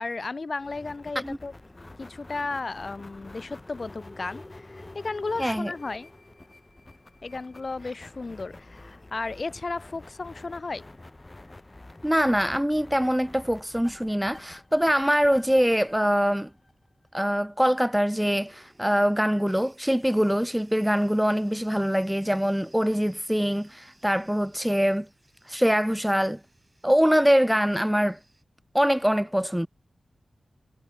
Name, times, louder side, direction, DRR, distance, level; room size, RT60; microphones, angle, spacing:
voice 1, 0.0-1.5 2.0-6.1 7.2-10.9, left 3 dB, 45° left, 3.0 m, -34 dB
sound 1, 0.6-17.1, left 2 dB, 25° left, 2.2 m, -48 dB
voice 2, 5.4-5.7 12.0-16.5 17.1-25.1 25.5-26.4 26.8-28.2 28.7-29.7, equal, 5° right, 0.3 m, -23 dB
sound 2, 18.2-28.4, right 2 dB, 25° right, 6.4 m, -60 dB
wide cardioid pair, 100°, 0 cm